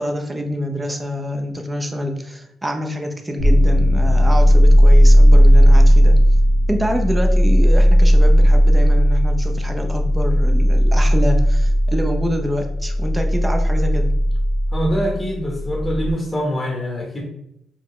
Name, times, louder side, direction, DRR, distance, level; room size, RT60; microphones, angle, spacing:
voice 1, 0.0-6.2 6.7-14.1, equal, 15° right, 4 dB, 0.7 m, -26 dB
sound 1, 3.4-16.1, equal, 85° right, 1.1 m, -14 dB
voice 2, 14.7-17.2, equal, 15° left, 0 dB, 1.1 m, -24 dB
3.8 x 3.1 x 3.2 m, 0.80 s
cardioid pair, 90°, 0 cm